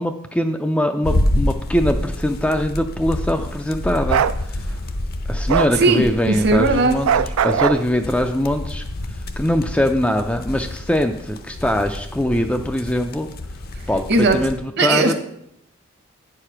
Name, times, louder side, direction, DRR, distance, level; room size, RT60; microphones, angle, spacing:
voice 1, 0.0-4.2 4.5-4.7 5.3-7.1 7.4-8.8 9.4-13.3 13.9-15.1, left 1 dB, 5° left, 5 dB, 0.3 m, -22 dB
sound 1, 1.0-14.6, left 1 dB, 45° left, 0.7 m, -28 dB
Bark, 4.1-4.4 5.5-5.7 7.1-7.8, right 8 dB, 75° right, 0.4 m, -19 dB
voice 2, 5.5-7.0 13.7-14.5 14.8-15.1, right 3 dB, 50° right, 7 dB, 1.0 m, -19 dB
9.2 x 4.9 x 5.7 m, 0.75 s
head